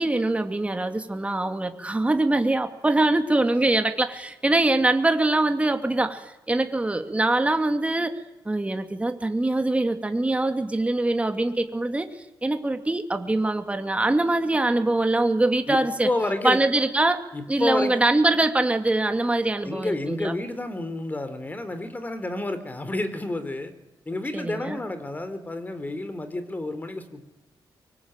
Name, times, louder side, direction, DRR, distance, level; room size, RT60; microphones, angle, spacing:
voice 1, 0.0-8.1 8.4-12.1 12.4-16.1 16.4-17.2 17.5-20.4 24.3-24.8, right 2 dB, 15° right, 7 dB, 2.6 m, -23 dB
voice 2, 16.0-16.6 17.3-18.0 19.6-23.7 24.1-27.3, left 2 dB, 20° left, 10 dB, 3.6 m, -30 dB
25.0 x 23.5 x 9.1 m, 0.96 s
wide cardioid pair, 120°, 8 cm